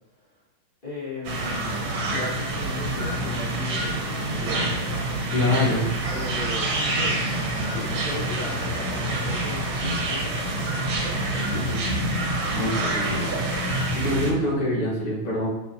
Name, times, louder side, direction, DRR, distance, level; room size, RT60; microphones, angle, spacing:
voice 1, 0.8-1.8 2.1-4.9 6.1-7.2 7.7-11.4, left 3 dB, 25° left, -11 dB, 2.3 m, -37 dB
Birds Morningforest, 1.2-14.3, right 1 dB, 70° right, 1.9 m, -27 dB
voice 2, 5.3-5.9 11.5-11.8 12.5-13.4 13.9-15.5, left 1 dB, 85° left, -8 dB, 2.7 m, -25 dB
sound 1, 6.0-11.6, right 3 dB, 50° right, 1.1 m, -45 dB
6.2 x 5.9 x 2.9 m, 0.93 s
omnidirectional pair, 2.4 m